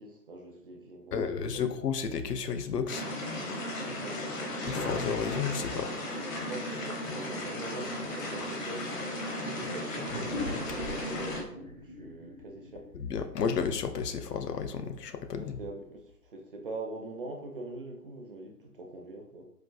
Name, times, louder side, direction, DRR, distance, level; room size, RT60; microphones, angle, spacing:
voice 1, 0.0-1.6 3.8-4.2 6.5-8.9 9.6-12.9 15.3-19.4, right 2 dB, 40° right, 2 dB, 0.4 m, -43 dB
voice 2, 1.1-3.0 4.7-5.9 12.9-15.6, left 6 dB, 80° left, 8 dB, 0.6 m, -32 dB
sound 1, 2.9-11.4, left 1 dB, 55° left, 1.0 m, -35 dB
sound 2, 10.1-14.9, left 2 dB, 25° left, 0.5 m, -42 dB
4.5 x 2.4 x 2.2 m, 0.71 s
figure-of-eight pair, 130°, 47 cm